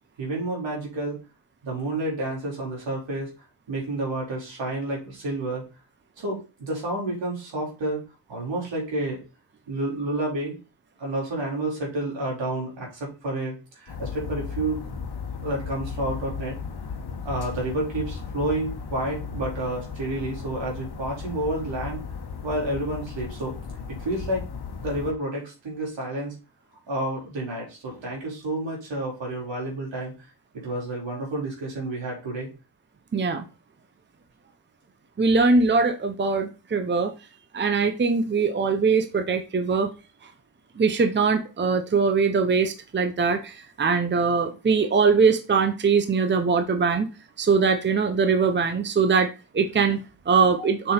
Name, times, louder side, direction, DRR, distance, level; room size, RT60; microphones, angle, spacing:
voice 1, 0.2-1.2 1.6-3.3 3.7-5.7 6.2-8.0 8.3-9.2 9.7-10.6 11.0-15.0 15.4-16.6 17.2-22.0 22.4-23.5 23.9-24.4 24.8-26.3 26.9-30.1 30.5-32.5, right 1 dB, 85° right, -2 dB, 4.3 m, -30 dB
sound 1, 13.9-25.1, left 6 dB, 60° left, 1.3 m, -36 dB
voice 2, 33.1-33.4 35.2-37.1 37.5-39.9 40.8-47.1 47.4-50.9, right 5 dB, 25° right, 8 dB, 0.8 m, -22 dB
6.9 x 5.9 x 4.3 m, 0.31 s
wide cardioid pair, 160°, 43 cm